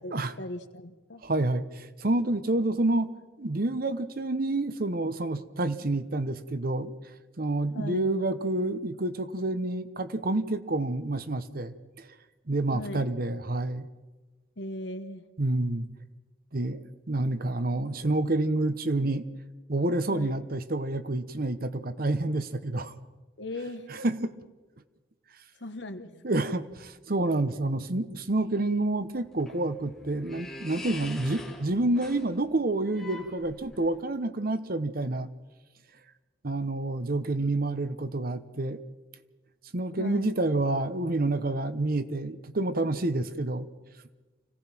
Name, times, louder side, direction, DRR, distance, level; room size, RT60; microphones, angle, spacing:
voice 1, 0.0-1.2 7.7-8.1 12.7-13.1 14.6-15.2 20.1-20.4 23.4-23.9 25.6-26.5 40.0-40.4, left 1 dB, 70° left, 9 dB, 1.4 m, -38 dB
voice 2, 1.2-3.1 3.4-7.0 7.4-12.1 12.5-13.9 15.4-15.9 16.5-19.3 19.7-22.9 23.9-24.3 26.2-35.3 36.4-38.8 39.7-43.7, right 2 dB, 50° right, 12 dB, 1.0 m, -28 dB
sound 1, 29.0-34.0, left 2 dB, ahead, 3.8 m, -44 dB
25.5 x 17.0 x 6.0 m, 1.2 s
head